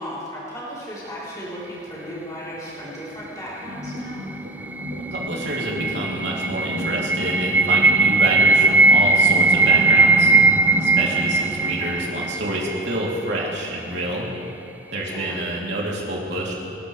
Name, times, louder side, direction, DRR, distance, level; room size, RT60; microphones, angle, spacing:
voice 1, 0.0-4.2 15.0-15.4, equal, 20° left, -9 dB, 4.2 m, -35 dB
sound 1, 3.7-11.3, left 1 dB, 90° right, 4.0 m, -34 dB
sound 2, 4.4-13.4, right 3 dB, 10° right, 0.3 m, -19 dB
voice 2, 5.0-10.3 10.8-14.3 14.9-16.6, right 1 dB, 65° right, -4 dB, 3.4 m, -27 dB
29.0 x 12.5 x 3.5 m, 2.6 s
head